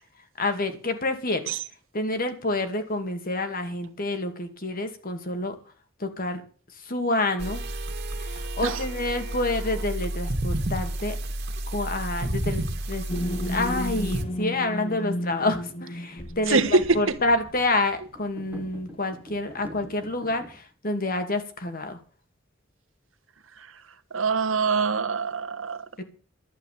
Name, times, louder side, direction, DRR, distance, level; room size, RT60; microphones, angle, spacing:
voice 1, 0.4-1.5 1.9-5.6 6.0-6.4 6.7-7.6 8.2-11.2 11.7-13.1 13.5-22.0 26.0-26.1, left 2 dB, 45° left, 2.4 m, -28 dB
sound 1, 7.4-14.2, right 1 dB, 55° right, 2.2 m, -31 dB
sound 2, 13.1-17.8, left 1 dB, 30° left, 0.8 m, -33 dB
voice 2, 16.5-17.2 23.6-23.7 24.1-25.9, right 4 dB, 85° right, 1.4 m, -24 dB
sound 3, 18.1-20.7, equal, 10° right, 1.3 m, -44 dB
11.5 x 8.0 x 9.3 m
head